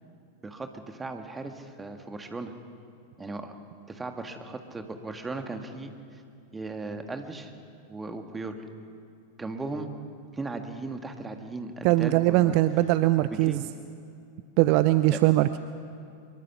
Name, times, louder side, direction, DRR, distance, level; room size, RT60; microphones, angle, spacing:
voice 1, 0.4-2.5 3.2-3.5 3.9-6.2 6.5-7.5 7.9-8.6 9.4-9.9 10.3-12.6 13.2-13.6 15.1-15.2, right 3 dB, 10° right, 6 dB, 1.7 m, -37 dB
voice 2, 11.8-13.6 14.6-15.6, right 16 dB, 45° right, 13 dB, 0.5 m, -21 dB
24.0 x 22.5 x 5.8 m, 2.5 s
figure-of-eight pair, 90°, 0 cm